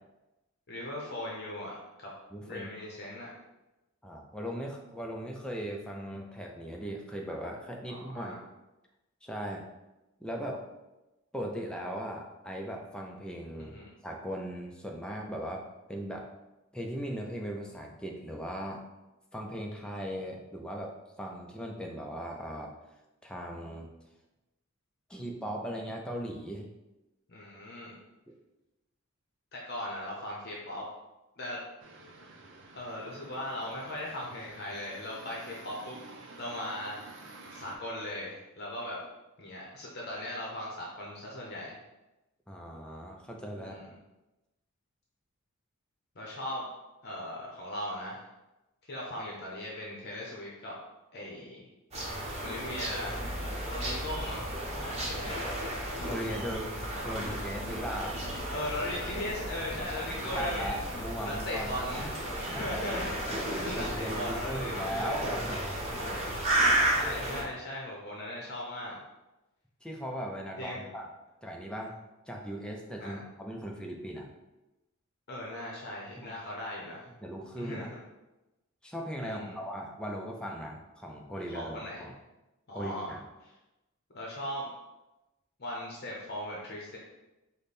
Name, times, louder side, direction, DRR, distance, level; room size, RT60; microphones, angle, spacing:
voice 1, 0.7-2.1 2.4-3.3 7.9-8.4 13.6-13.9 27.3-27.9 29.5-30.8 31.4-31.7 32.7-37.2 37.5-39.0 39.4-41.8 43.5-43.8 46.2-46.7 47.0-48.2 48.9-50.8 51.1-51.7 52.4-53.2 53.7-54.5 54.7-55.4 58.5-60.8 61.2-65.2 66.8-69.0 70.6-70.8 73.0-73.2 75.3-77.1 77.6-78.0 79.2-79.6 81.4-82.1 82.7-83.1 83.4-83.5 84.1-84.7 85.6-87.0, left 1 dB, 50° left, -3 dB, 0.8 m, -38 dB
voice 2, 2.3-2.7 4.0-8.4 9.2-9.6 10.2-10.6 11.3-16.2 16.7-18.8 19.3-22.7 23.2-23.9 25.1-26.6 42.5-43.8 56.1-56.7 57.0-58.2 60.3-62.1 62.5-62.8 63.3-65.6 69.8-71.1 71.4-71.9 72.3-74.3 76.2-76.3 77.2-77.9 78.8-82.1 82.7-83.2, equal, 5° left, 0 dB, 0.5 m, -38 dB
sound 1, 31.8-37.8, right 2 dB, 60° right, 0.6 m, -50 dB
sound 2, 51.9-67.4, right 1 dB, 30° right, 1.0 m, -33 dB
5.1 x 2.2 x 4.1 m, 1.0 s
head